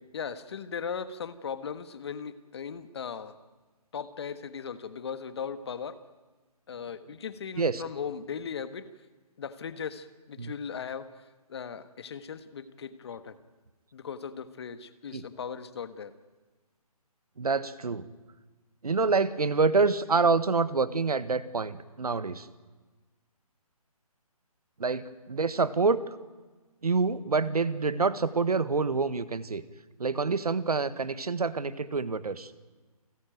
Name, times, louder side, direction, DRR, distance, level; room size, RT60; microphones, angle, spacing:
voice 1, 0.1-3.3 3.9-6.0 6.7-8.9 9.4-11.2 11.5-13.3 13.9-16.1, left 6 dB, 45° left, 12 dB, 1.5 m, -38 dB
voice 2, 17.4-18.1 18.8-22.5 24.8-26.0 26.8-29.6 30.0-32.5, right 4 dB, 75° right, 15 dB, 1.5 m, -27 dB
28.5 x 14.5 x 9.1 m, 1.3 s
figure-of-eight pair, 150°, 20 cm